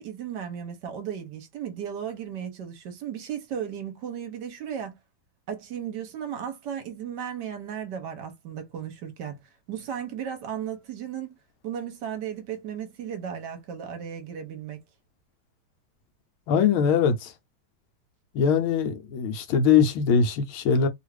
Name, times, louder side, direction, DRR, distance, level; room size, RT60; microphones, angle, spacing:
voice 1, 0.0-5.0 5.5-9.4 9.7-11.4 11.6-14.8, right 8 dB, 65° right, 1.2 m, -35 dB
voice 2, 16.5-17.3 18.3-20.9, left 6 dB, 90° left, 1.6 m, -22 dB
3.5 x 2.4 x 3.2 m
omnidirectional pair, 2.2 m